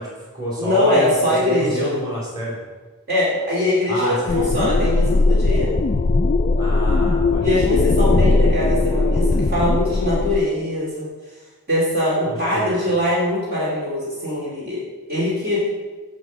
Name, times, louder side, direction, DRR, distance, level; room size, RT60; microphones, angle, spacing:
voice 1, 0.0-2.6 3.9-4.6 6.6-7.9 12.2-12.9, equal, 20° right, -6 dB, 3.4 m, -29 dB
voice 2, 0.6-1.9 3.1-5.7 7.4-11.1 11.7-14.8 15.1-15.6, left 1 dB, 45° right, -6 dB, 2.6 m, -22 dB
sound 1, 4.3-10.4, left 3 dB, 35° left, 0.3 m, -18 dB
7.9 x 6.8 x 6.2 m, 1.3 s
head